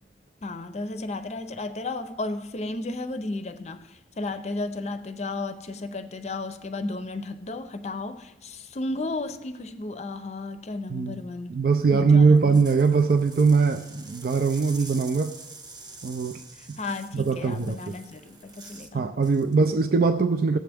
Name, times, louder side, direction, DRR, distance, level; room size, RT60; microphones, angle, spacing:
voice 1, 0.4-11.6 11.9-12.6 16.6-19.0, left 2 dB, 40° left, 0.6 m, -34 dB
voice 2, 11.5-15.4 16.0-16.4 16.7-16.8 17.1-17.8 18.9-20.6, right 4 dB, 55° right, 0.4 m, -21 dB
sound 1, 12.3-18.9 19.2-19.5, right 3 dB, 25° right, 0.9 m, -46 dB
16.5 x 7.6 x 3.5 m
head